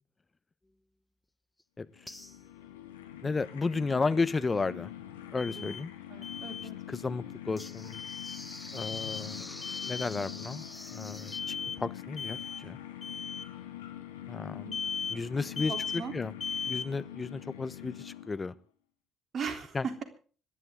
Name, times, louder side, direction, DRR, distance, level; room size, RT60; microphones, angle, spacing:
sound 1, 1.6-1.7 2.1-2.8 7.6-11.4, left 2 dB, 15° left, 1.7 m, -45 dB
voice 1, 1.8-2.1 3.2-4.9 5.3-5.9 6.9-8.0 8.7-9.5 9.9-10.6 10.9-12.8 14.3-14.7 15.1-16.3 16.7-18.5 19.7-19.9, left 4 dB, 30° left, 15 dB, 1.1 m, -33 dB
sound 2, 1.9-18.6, left 12 dB, 85° left, 1.7 m, -44 dB
Alarm, 5.4-5.8 6.2-6.7 7.9-8.4 8.8-9.3 9.6-10.1 11.3-11.8 12.2-12.6 13.0-13.4 14.7-15.2 15.6-16.0 16.4-16.9, left 6 dB, 45° left, 2.3 m, -37 dB
voice 2, 6.1-6.8 14.6-14.8 15.7-16.1 19.3-20.0, right 6 dB, 50° right, 7 dB, 3.4 m, -38 dB
25.5 x 11.5 x 3.8 m, 0.41 s
hypercardioid pair, 50°, 0 cm